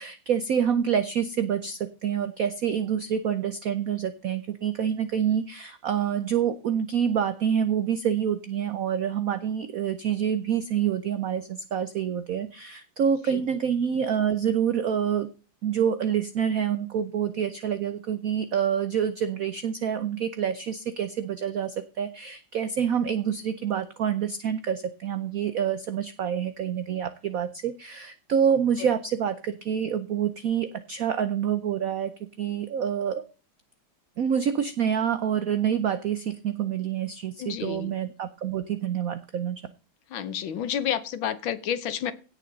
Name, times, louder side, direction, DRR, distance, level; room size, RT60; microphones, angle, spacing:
voice 1, 0.0-15.3 15.6-32.1 32.4-33.2 34.2-39.6, right 8 dB, 85° right, 11 dB, 0.7 m, -27 dB
voice 2, 37.4-37.9 40.1-42.1, left 9 dB, 70° left, 13 dB, 1.6 m, -30 dB
17.0 x 6.3 x 4.0 m, 0.36 s
omnidirectional pair, 2.4 m